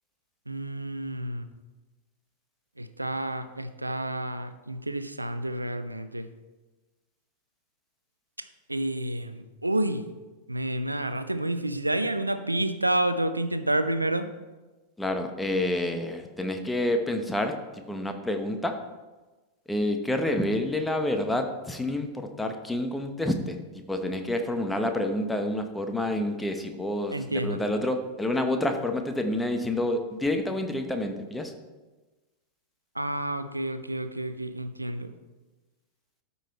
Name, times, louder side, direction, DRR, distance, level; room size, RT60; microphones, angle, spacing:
voice 1, 0.5-1.5 2.8-6.3 8.7-10.0 10.5-14.3 27.1-27.6 33.0-35.1, right 1 dB, 85° right, 11 dB, 0.6 m, -29 dB
voice 2, 15.0-17.5 17.9-18.7 19.7-23.5 23.9-31.5, left 1 dB, 5° left, 5 dB, 1.1 m, -28 dB
12.5 x 5.6 x 4.3 m, 1.2 s
figure-of-eight pair, 90°, 0 cm